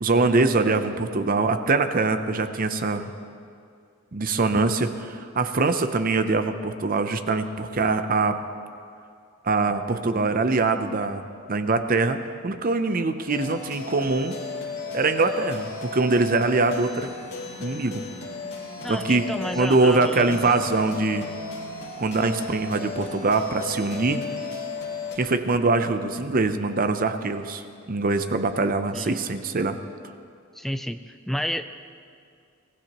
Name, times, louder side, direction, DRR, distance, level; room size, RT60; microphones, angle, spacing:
voice 1, 0.0-3.1 4.1-8.4 9.4-11.2 11.5-14.4 14.9-17.1 17.6-18.0 18.9-19.2 19.6-21.3 22.0-24.2 25.2-29.8, right 3 dB, 40° right, 9 dB, 0.6 m, -23 dB
sound 1, 13.3-25.2, left 3 dB, 80° left, 2.8 m, -35 dB
voice 2, 18.8-20.5 28.9-29.2 30.5-31.6, equal, ahead, 8 dB, 0.4 m, -31 dB
24.0 x 16.5 x 3.0 m, 2.4 s
head